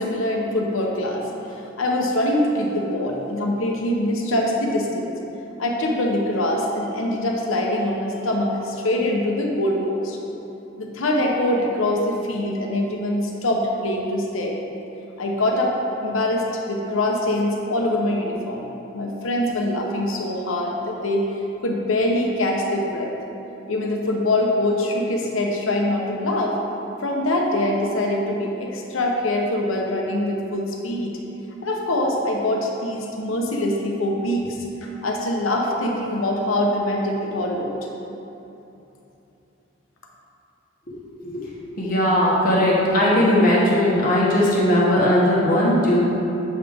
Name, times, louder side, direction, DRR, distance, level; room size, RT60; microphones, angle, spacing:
voice 1, 0.0-5.1 5.6-10.2 10.8-14.6 15.2-15.7 16.0-18.6 18.9-21.2 21.6-23.1 23.7-26.6 27.0-31.1 31.6-37.7, left 1 dB, 90° left, 0 dB, 0.9 m, -23 dB
voice 2, 41.2-46.0, left 1 dB, 45° left, -6 dB, 1.1 m, -18 dB
7.5 x 5.0 x 3.5 m, 2.9 s
head